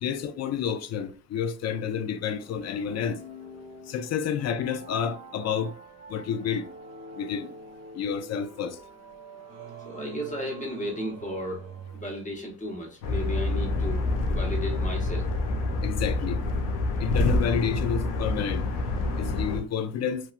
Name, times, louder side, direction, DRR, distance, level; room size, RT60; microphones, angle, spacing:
voice 1, 0.0-3.2 3.9-5.7 6.1-6.7 7.2-7.5 8.0-8.8 15.8-16.4 17.0-18.6 19.2-20.2, left 7 dB, 45° left, 0.4 m, -29 dB
sound 1, 2.4-11.0, equal, 15° right, 0.9 m, -47 dB
Singing, 9.5-16.8, right 7 dB, 75° right, 0.8 m, -45 dB
voice 2, 9.8-11.7 11.9-15.3 17.4-17.5, equal, 20° left, 1.1 m, -34 dB
sound 2, 13.0-19.6, left 2 dB, 85° left, 0.7 m, -27 dB
3.0 x 2.2 x 2.4 m
cardioid pair, 90°, 40 cm